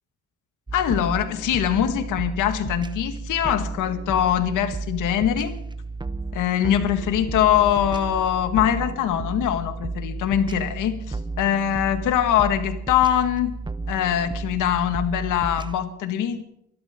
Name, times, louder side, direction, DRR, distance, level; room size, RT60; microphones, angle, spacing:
voice 1, 0.7-5.5 6.3-13.6 13.9-16.4, left 10 dB, 85° left, 7 dB, 1.9 m, -23 dB
sound 1, 0.7-15.8, right 3 dB, 15° right, 0.8 m, -33 dB
24.0 x 12.5 x 3.8 m, 0.76 s
cardioid pair, 90°, 30 cm